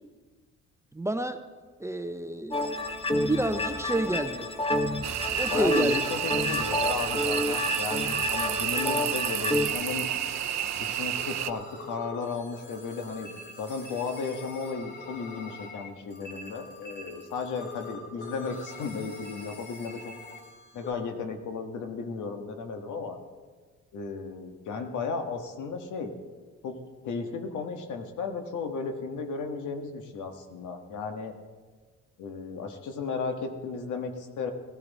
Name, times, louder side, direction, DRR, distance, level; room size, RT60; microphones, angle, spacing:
voice 1, 0.9-1.4 1.8-2.6 3.1-4.5 5.3-6.0, right 1 dB, 10° right, 8 dB, 0.8 m, -30 dB
sound 1, 2.5-9.7, left 1 dB, 20° left, 1.4 m, -29 dB
Night Stream and Clicking Crickets, 5.0-11.5, right 12 dB, 60° right, 0.6 m, -30 dB
voice 2, 5.5-10.1 10.7-13.3 13.6-20.1 20.7-23.2 23.9-26.1 26.6-26.8 27.0-31.3 32.2-34.5, left 4 dB, 80° left, 5 dB, 1.7 m, -34 dB
sound 2, 7.1-20.9, left 3 dB, 35° left, 3.4 m, -44 dB
17.5 x 13.0 x 4.2 m, 1.4 s
cardioid pair, 90°, 30 cm